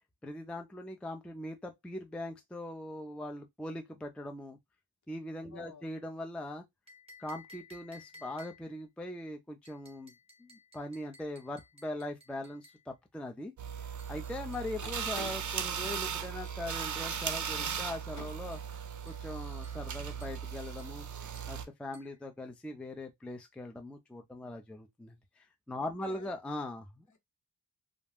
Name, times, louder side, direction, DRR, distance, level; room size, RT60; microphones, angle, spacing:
voice 1, 0.2-4.6 5.1-6.6 7.2-10.1 10.4-13.5 14.1-18.6 19.1-21.1 21.5-27.0, left 1 dB, 5° left, 0.4 m, -41 dB
voice 2, 5.5-5.9 25.8-26.4 27.1-27.2, left 6 dB, 45° left, 0.9 m, -53 dB
sound 1, 6.9-8.8 9.6-12.9 14.0-17.4 18.5-18.7 19.1-19.3 19.6-19.9 20.2-20.5 20.8-21.0 21.3-21.6 21.9-22.2, left 2 dB, 15° right, 1.0 m, -58 dB
sound 2, 13.6-21.6, right 7 dB, 45° right, 0.6 m, -37 dB
sound 3, 14.7-18.8, left 4 dB, 65° left, 1.2 m, -52 dB
2.5 x 2.1 x 3.4 m
cardioid pair, 65°, 41 cm